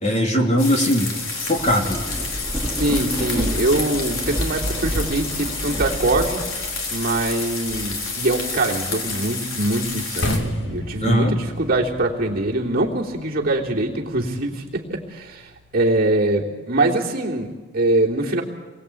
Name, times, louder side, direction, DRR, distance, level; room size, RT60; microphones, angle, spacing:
voice 1, 0.0-2.0 11.0-11.3, equal, 35° left, 1 dB, 3.1 m, -20 dB
sound 1, 0.6-10.4, left 4 dB, 85° left, 4.0 m, -29 dB
Thunder / Rain, 1.2-10.1 10.7-12.0, equal, ahead, 2.8 m, -31 dB
voice 2, 2.7-6.4 6.9-18.4, right 2 dB, 45° right, -2 dB, 3.3 m, -23 dB
sound 2, 10.2-16.4, equal, 55° left, 2.0 m, -33 dB
29.5 x 22.5 x 8.5 m, 1.4 s
head